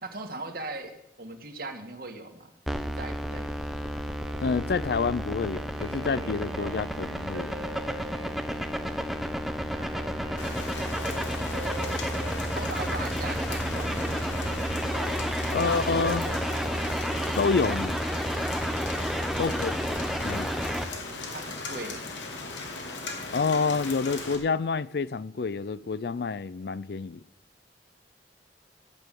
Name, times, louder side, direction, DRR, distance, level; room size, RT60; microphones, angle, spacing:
voice 1, 0.0-2.5 2.8-3.5 9.7-10.8 11.1-11.3 12.5-14.2 15.5-16.4 21.3-22.0, right 2 dB, 55° right, 1.8 m, -40 dB
sound 1, 2.7-20.8, equal, ahead, 0.9 m, -31 dB
Guitar, 4.2-18.8, equal, 70° right, 2.6 m, -45 dB
voice 2, 4.4-7.6 15.5-16.3 17.4-18.0 19.4-19.9 20.2-20.5 23.3-27.2, left 4 dB, 60° left, 0.4 m, -28 dB
Rain, 10.4-24.4, left 3 dB, 90° left, 2.7 m, -38 dB
14.0 x 9.1 x 7.5 m
head